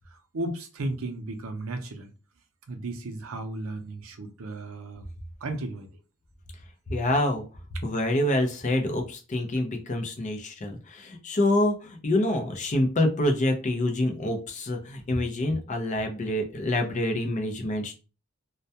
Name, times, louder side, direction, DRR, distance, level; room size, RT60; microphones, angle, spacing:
voice 1, 0.1-2.1 2.7-5.0 5.4-5.9 7.7-7.8, right 2 dB, 75° right, 0.5 m, -34 dB
voice 2, 6.9-7.5 7.8-17.9, left 1 dB, 35° left, 0.5 m, -26 dB
2.2 x 2.1 x 2.7 m
head